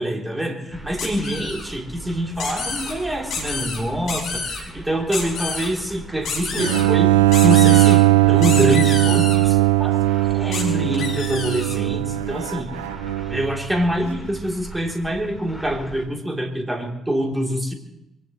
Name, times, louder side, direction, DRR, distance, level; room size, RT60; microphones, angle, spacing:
voice 1, 0.0-7.1 7.4-10.0 10.3-12.7 13.3-17.7, equal, 15° right, 2 dB, 3.3 m, -25 dB
sound 1, 0.7-16.1, right 1 dB, ahead, 3.8 m, -40 dB
sound 2, 1.0-1.6 2.4-2.9 3.3-3.8 4.1-4.6 5.1-5.7 6.2-6.8 7.3-8.0 8.4-9.4 10.5-10.6 10.9-11.8, left 4 dB, 65° left, 4.1 m, -29 dB
Bowed string instrument, 6.6-13.6, right 17 dB, 80° right, 0.6 m, -18 dB
23.5 x 19.0 x 3.1 m, 0.88 s
figure-of-eight pair, 40°, 0 cm